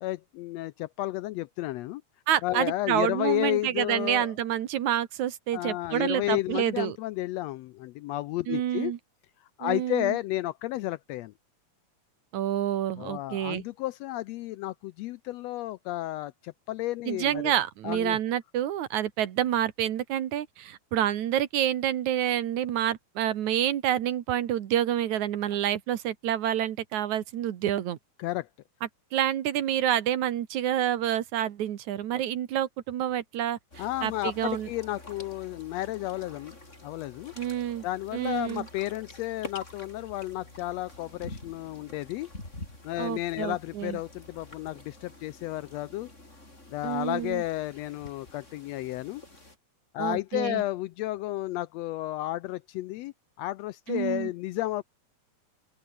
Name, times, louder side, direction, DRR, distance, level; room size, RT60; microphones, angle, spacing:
voice 1, 0.0-2.0 2.4-4.3 5.5-8.9 9.6-11.3 13.0-17.6 17.8-18.2 28.2-28.5 33.8-36.6 36.8-37.3 37.8-42.3 42.8-46.1 46.7-49.2 49.9-54.8, left 16 dB, 80° left, 1.6 m, -32 dB
voice 2, 2.3-7.0 8.5-9.0 9.6-10.2 12.3-13.6 17.1-28.0 29.1-34.7 37.4-37.8 38.1-38.7 43.0-44.0 46.8-47.4 50.0-50.6 53.9-54.3, right 11 dB, 75° right, 2.8 m, -28 dB
sound 1, 33.7-49.6, left 2 dB, 20° left, 6.1 m, -47 dB
open air
omnidirectional pair, 3.4 m